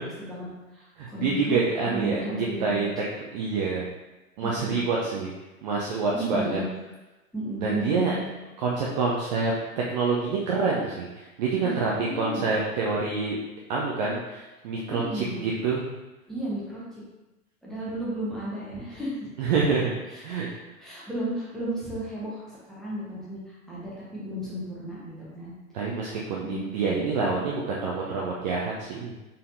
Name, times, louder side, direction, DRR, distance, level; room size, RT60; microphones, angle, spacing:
voice 1, 0.0-1.6 1.8-2.9 4.4-4.8 6.1-6.7 7.3-8.3 11.6-12.5 14.9-15.4 16.3-16.8 17.6-19.3 20.1-20.5 20.8-25.5 26.4-27.1, right 1 dB, ahead, -8 dB, 1.1 m, -34 dB
voice 2, 1.0-2.9 3.3-3.8 4.4-5.3 5.6-6.6 7.6-8.1 8.6-13.4 13.7-15.9 19.4-19.9 20.2-20.5 25.7-29.1, right 4 dB, 30° right, -4 dB, 0.5 m, -27 dB
4.0 x 4.0 x 2.6 m, 1.1 s
figure-of-eight pair, 100°, 43 cm